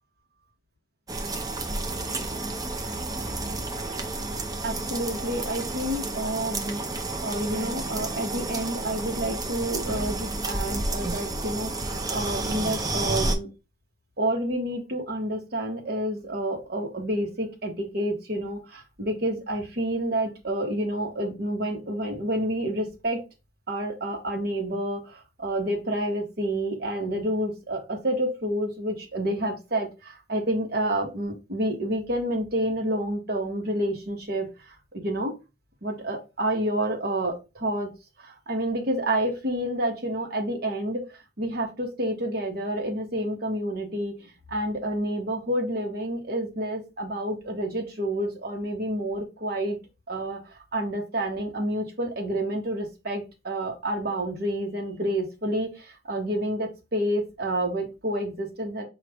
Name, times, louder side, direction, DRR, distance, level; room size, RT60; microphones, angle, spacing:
sound 1, 1.1-13.4, right 2 dB, 20° right, 0.5 m, -31 dB
voice 1, 4.6-13.5 14.2-23.2 23.7-35.3 35.8-37.9 38.2-44.2 44.5-49.8 50.1-58.8, right 1 dB, 60° right, 2 dB, 1.1 m, -29 dB
4.6 x 2.5 x 3.3 m, 0.26 s
head